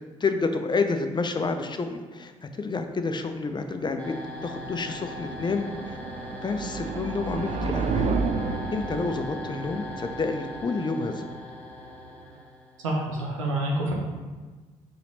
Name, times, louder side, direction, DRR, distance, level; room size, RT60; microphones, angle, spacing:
voice 1, 0.2-2.3 2.6-4.1 4.4-6.0 6.4-8.1 8.7-11.3, left 4 dB, 30° left, 7 dB, 0.5 m, -29 dB
sound 1, 3.4-12.4, right 4 dB, 45° right, 0.4 m, -33 dB
sound 2, 4.0-12.9, left 2 dB, 5° left, 1.1 m, -40 dB
voice 2, 12.8-13.9, right 1 dB, 90° right, -2 dB, 0.7 m, -27 dB
4.2 x 2.9 x 3.9 m, 1.3 s
hypercardioid pair, 45°, 16 cm